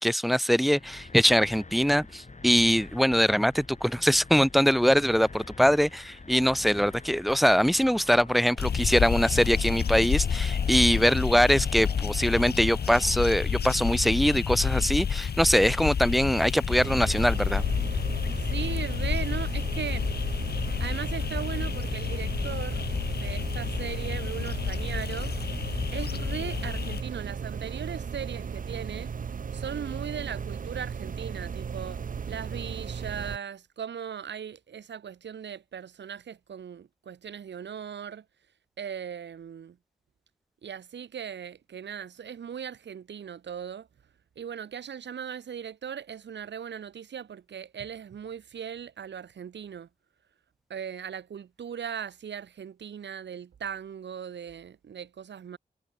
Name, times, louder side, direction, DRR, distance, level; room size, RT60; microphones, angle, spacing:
voice 1, 0.0-17.6, equal, ahead, 0.6 m, -23 dB
sound 1, 0.7-13.2, left 3 dB, 40° left, 7.2 m, -46 dB
sound 2, 8.6-27.0, left 7 dB, 65° left, 0.9 m, -29 dB
sound 3, 16.7-33.4, right 6 dB, 50° right, 0.6 m, -36 dB
voice 2, 18.5-20.1 20.8-22.9 23.1-25.3 25.9-29.1 29.5-38.2 38.8-39.8 40.6-43.9 44.4-49.9 50.7-55.6, right 8 dB, 80° right, 1.9 m, -38 dB
cardioid pair, 40°, 18 cm